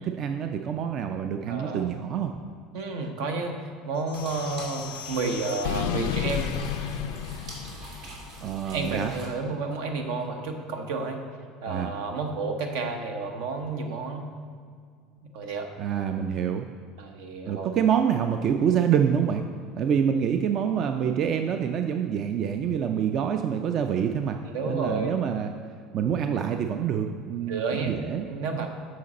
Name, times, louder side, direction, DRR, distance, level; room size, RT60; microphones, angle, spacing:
voice 1, 0.0-2.3 8.4-9.1 11.7-11.9 15.8-16.7 17.5-19.4 19.8-24.4 24.7-25.5 25.9-28.3 28.5-28.7, right 8 dB, 45° right, 6 dB, 0.3 m, -26 dB
voice 2, 1.5-1.9 2.7-3.6 3.9-6.5 8.6-11.2 11.6-14.3 15.3-15.7 17.0-17.7 24.5-25.1 27.5-28.0 28.3-28.7, right 3 dB, 80° right, 4 dB, 0.9 m, -31 dB
sound 1, 4.1-8.4, left 10 dB, 85° left, 0.3 m, -33 dB
sound 2, 4.1-9.3, right 2 dB, 65° right, 2.1 m, -44 dB
7.6 x 5.8 x 4.1 m, 2.1 s
supercardioid pair, 120°, 0 cm